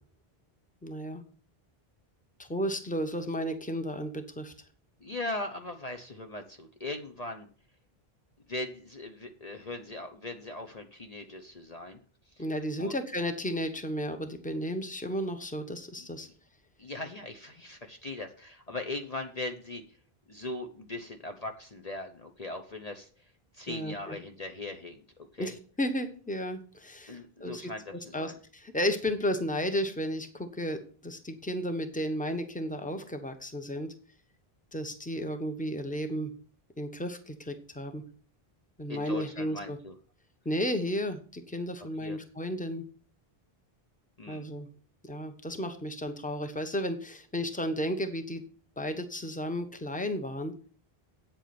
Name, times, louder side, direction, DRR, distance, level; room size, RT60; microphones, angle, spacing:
voice 1, 0.8-1.2 2.4-4.5 12.4-16.3 23.7-24.2 25.4-27.7 28.1-33.9 34.7-36.3 36.8-38.0 38.8-39.8 40.4-42.8 44.3-44.7 45.0-48.4 48.8-50.5, equal, 10° left, 7 dB, 1.1 m, -33 dB
voice 2, 5.0-7.5 8.5-12.0 12.8-12.9 16.0-16.1 16.8-19.8 20.3-23.1 23.5-25.5 27.1-28.3 38.9-39.9 41.8-42.2 44.2-44.5, left 2 dB, 40° left, 4 dB, 1.0 m, -39 dB
8.7 x 8.1 x 6.0 m, 0.42 s
omnidirectional pair, 1.0 m